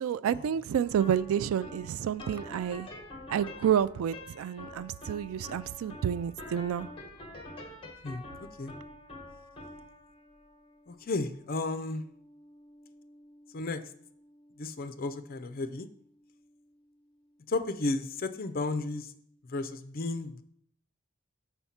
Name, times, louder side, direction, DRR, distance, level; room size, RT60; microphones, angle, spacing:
voice 1, 0.0-2.9 3.3-6.9, right 9 dB, 85° right, 17 dB, 0.3 m, -29 dB
sound 1, 0.8-18.0, left 1 dB, 25° left, 1.2 m, -48 dB
voice 2, 10.9-12.0 13.5-13.8 14.6-15.9 17.5-19.1 19.4-20.4, left 3 dB, 45° left, 10 dB, 0.5 m, -33 dB
7.1 x 4.4 x 5.6 m, 0.65 s
head